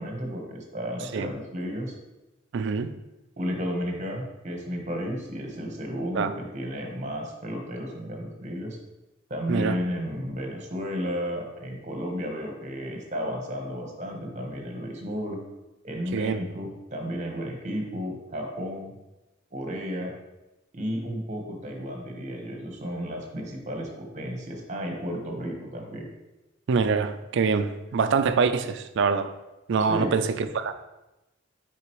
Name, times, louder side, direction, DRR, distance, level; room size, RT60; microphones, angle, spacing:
voice 1, 0.0-1.9 3.4-8.8 9.3-15.4 15.8-18.9 19.5-20.1 20.7-26.1 29.9-30.1, equal, 35° right, 2 dB, 1.1 m, -33 dB
voice 2, 2.5-2.9 6.1-6.3 9.5-9.8 16.1-16.4 26.7-29.3 29.7-30.7, right 5 dB, 60° right, 10 dB, 0.4 m, -25 dB
6.6 x 4.9 x 3.1 m, 1.0 s
head